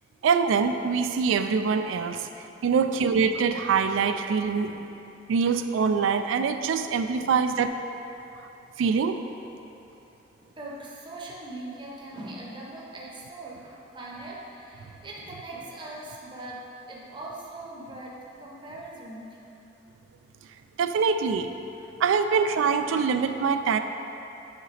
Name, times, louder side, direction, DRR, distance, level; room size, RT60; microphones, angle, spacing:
voice 1, 0.2-2.3 2.6-4.7 5.3-7.7 8.8-9.2 20.8-21.5 22.0-23.8, right 5 dB, 80° right, 8 dB, 0.3 m, -24 dB
voice 2, 2.7-3.0 4.7-4.8 7.2-7.4 8.8-8.9 10.4-19.4, right 2 dB, 25° right, -4 dB, 0.7 m, -41 dB
8.0 x 4.0 x 3.2 m, 3.0 s
head